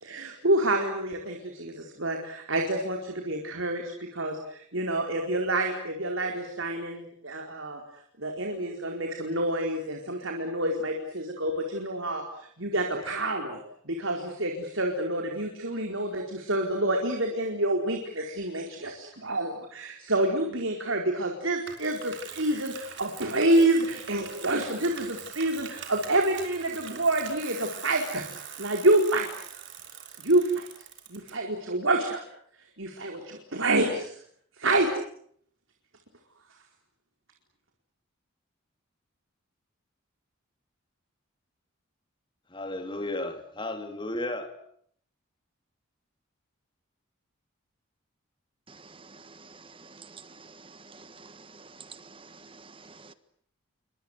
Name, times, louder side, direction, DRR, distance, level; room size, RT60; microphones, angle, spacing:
voice 1, 0.0-7.8 8.2-13.6 13.8-28.2 28.6-29.3 30.2-30.7 31.1-32.2 32.8-34.1 34.6-34.9, right 1 dB, 70° right, 4.6 m, -28 dB
Bicycle, 21.7-31.3, right 7 dB, 55° right, 6.3 m, -43 dB
voice 2, 42.5-44.6, left 2 dB, 25° left, 3.5 m, -34 dB
voice 3, 49.9-50.5 50.8-51.3 51.8-52.3 53.0-53.1, right 5 dB, 25° right, 1.4 m, -48 dB
29.0 x 25.0 x 8.2 m
head